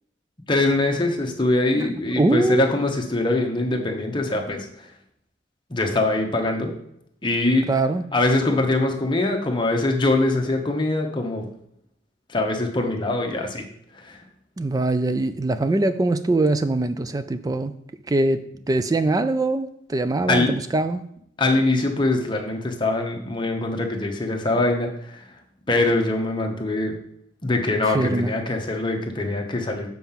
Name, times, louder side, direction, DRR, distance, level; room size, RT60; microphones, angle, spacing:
voice 1, 0.5-4.6 5.7-6.7 7.2-7.7 8.1-11.5 12.3-13.6 14.1-14.2 20.3-20.5 21.4-24.9 25.7-27.0 27.4-29.9, left 2 dB, 25° left, 0.9 m, -23 dB
voice 2, 1.8-2.7 7.7-8.0 14.6-17.7 18.1-21.1 27.9-28.3, right 2 dB, 20° right, 0.3 m, -23 dB
7.2 x 4.7 x 5.7 m
head